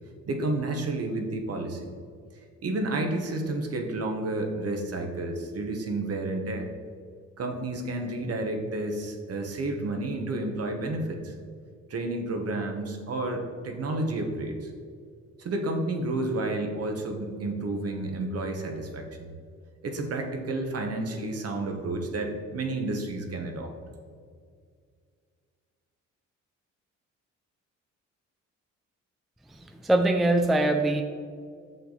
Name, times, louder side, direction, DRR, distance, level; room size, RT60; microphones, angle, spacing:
voice 1, 0.3-1.9 2.6-6.7 7.4-11.3 11.9-14.7 15.4-19.3 19.8-23.7, right 2 dB, 55° right, 4 dB, 1.2 m, -31 dB
voice 2, 29.5-31.0, right 2 dB, ahead, 5 dB, 0.4 m, -23 dB
6.8 x 5.6 x 4.0 m, 2.1 s
cardioid pair, 90°, 30 cm